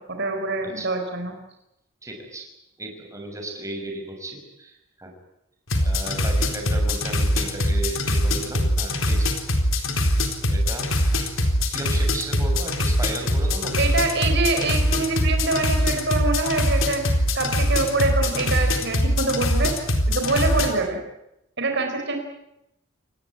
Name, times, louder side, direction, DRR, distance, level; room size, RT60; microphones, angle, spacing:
voice 1, 0.0-1.4 13.8-17.0 17.3-19.8 20.1-21.0 21.6-22.2, right 3 dB, 60° right, 4 dB, 4.4 m, -25 dB
voice 2, 2.0-2.5 2.8-5.1 5.8-9.3 9.8-10.0 10.5-13.8, right 2 dB, 15° right, 2 dB, 6.5 m, -35 dB
sound 1, 5.7-20.7, left 1 dB, 85° left, 4.1 m, -22 dB
27.5 x 19.0 x 9.8 m, 0.85 s
head